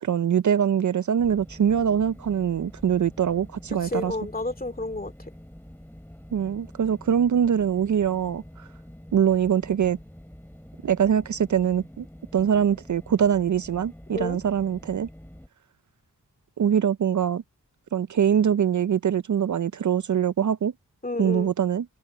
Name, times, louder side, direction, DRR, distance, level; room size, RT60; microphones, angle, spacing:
voice 1, 0.0-4.1 6.3-8.7 9.1-10.0 10.8-12.1 12.3-15.1 16.6-17.4 17.9-20.7 21.2-21.8, right 8 dB, 55° right, 0.5 m, -23 dB
sound 1, 1.2-15.5, equal, 5° left, 4.2 m, -46 dB
voice 2, 3.8-5.1 14.1-14.4 21.0-21.5, left 2 dB, 25° left, 2.5 m, -30 dB
wide cardioid pair, 70°, 35 cm